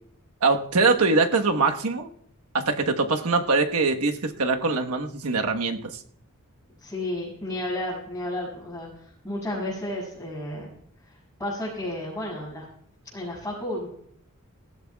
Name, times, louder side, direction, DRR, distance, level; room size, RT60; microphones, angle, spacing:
voice 1, 0.4-2.1 2.5-5.9, right 3 dB, 85° right, 4 dB, 1.3 m, -23 dB
voice 2, 6.8-10.7 11.1-12.6 13.0-13.9, left 1 dB, 10° left, -8 dB, 6.6 m, -32 dB
19.0 x 16.0 x 2.3 m, 0.68 s
head